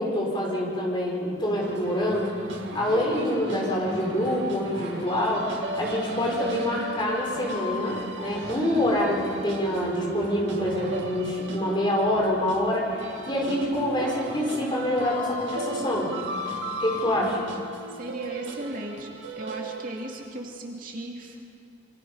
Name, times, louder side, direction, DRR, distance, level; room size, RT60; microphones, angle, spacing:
voice 1, 0.0-2.3 2.7-16.1 16.8-17.4, left 1 dB, 25° left, -1 dB, 4.7 m, -26 dB
sound 1, 1.4-17.5, right 1 dB, 65° right, 7.3 m, -42 dB
sound 2, 1.6-20.3, right 1 dB, 85° right, 2.2 m, -36 dB
voice 2, 17.9-19.1 19.4-21.4, right 1 dB, 45° right, 0 dB, 2.5 m, -36 dB
27.0 x 24.0 x 5.6 m, 2.5 s
head